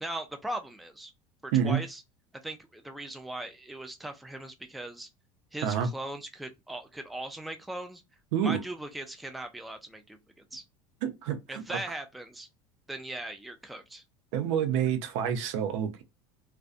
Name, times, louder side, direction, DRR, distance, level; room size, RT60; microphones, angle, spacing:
voice 1, 0.0-1.1 1.4-2.0 2.4-5.1 5.5-8.0 8.4-10.2 10.5-10.6 11.5-12.5 12.9-14.0, right 1 dB, ahead, 0.4 m, -39 dB
voice 2, 11.0-11.8 14.3-16.0, right 8 dB, 70° right, 0.6 m, -28 dB
2.5 x 2.2 x 2.4 m
hypercardioid pair, 90°, 16 cm